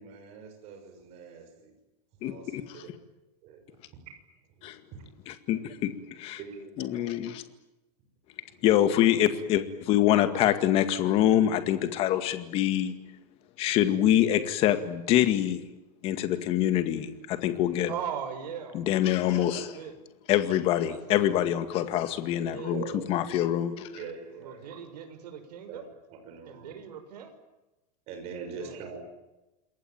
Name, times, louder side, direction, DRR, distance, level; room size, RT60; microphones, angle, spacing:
voice 1, 0.0-1.7 2.2-2.9 3.4-4.0 4.5-5.0 6.4-7.1 22.7-23.1 23.9-24.8 25.7-25.8 26.1-26.7 28.1-29.0, right 6 dB, 30° right, 5 dB, 6.3 m, -43 dB
voice 2, 2.2-2.8 4.6-4.8 5.3-6.4 6.8-7.4 8.6-12.9 13.6-15.6 16.0-17.9 18.7-19.7 20.3-22.8 23.1-23.9, left 12 dB, 25° left, 10 dB, 2.1 m, -25 dB
voice 3, 17.9-18.9 19.2-20.0 20.8-21.3 22.5-22.8 24.4-25.9 26.5-27.3 28.6-28.8, right 8 dB, 75° right, 8 dB, 6.0 m, -39 dB
28.0 x 21.5 x 9.0 m, 1.0 s
supercardioid pair, 175°, 21 cm